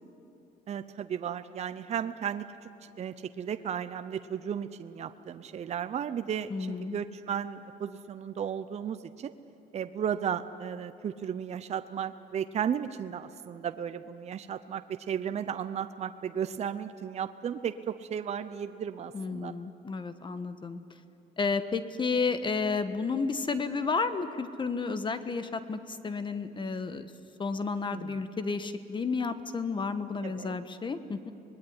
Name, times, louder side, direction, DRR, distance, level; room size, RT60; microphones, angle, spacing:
voice 1, 0.7-2.5 3.0-9.3 9.7-19.5 27.9-28.2 30.2-30.5, right 8 dB, 40° right, 11 dB, 0.7 m, -34 dB
voice 2, 6.5-7.0 19.1-20.8 21.4-27.1 27.4-31.3, left 4 dB, 30° left, 11 dB, 1.3 m, -32 dB
25.0 x 20.0 x 9.7 m, 2.9 s
cardioid pair, 110°, 17 cm